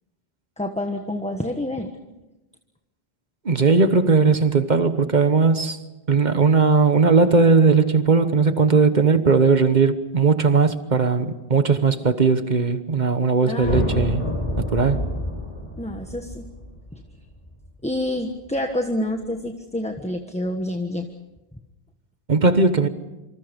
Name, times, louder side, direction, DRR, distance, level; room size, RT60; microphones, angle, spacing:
voice 1, 0.6-2.0 13.4-14.0 15.8-16.5 16.9-17.0 17.8-21.1, left 1 dB, 5° left, 1.3 m, -28 dB
voice 2, 3.4-5.8 6.1-14.2 14.7-15.0 22.3-22.9, right 4 dB, 45° right, 1.3 m, -18 dB
sound 1, 13.6-18.0, left 1 dB, 30° left, 3.9 m, -28 dB
27.0 x 26.0 x 5.3 m
omnidirectional pair, 1.1 m